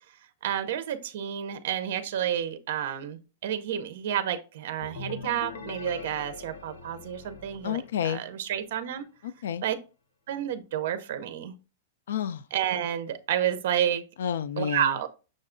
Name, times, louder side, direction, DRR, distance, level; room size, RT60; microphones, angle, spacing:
voice 1, 0.4-9.1 9.6-9.8 10.3-11.5 12.5-14.0 14.6-15.1, right 10 dB, 55° right, 0.5 m, -30 dB
sound 1, 4.8-8.5, left 4 dB, 65° left, 0.7 m, -42 dB
voice 2, 7.6-8.2 9.2-9.6 12.1-12.4 14.2-15.1, left 9 dB, 80° left, 0.3 m, -30 dB
6.2 x 2.3 x 3.7 m
supercardioid pair, 175°, 0 cm